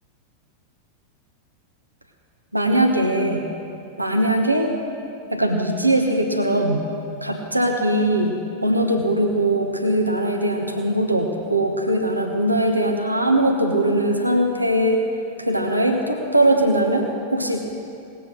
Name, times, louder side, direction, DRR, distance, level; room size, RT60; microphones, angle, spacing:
voice 1, 2.5-3.4 4.0-4.7 5.3-6.9 7.2-15.1 15.4-17.6, right 1 dB, 85° right, 2 dB, 1.1 m, -20 dB
18.5 x 7.6 x 6.4 m, 2.6 s
figure-of-eight pair, 90°, 0 cm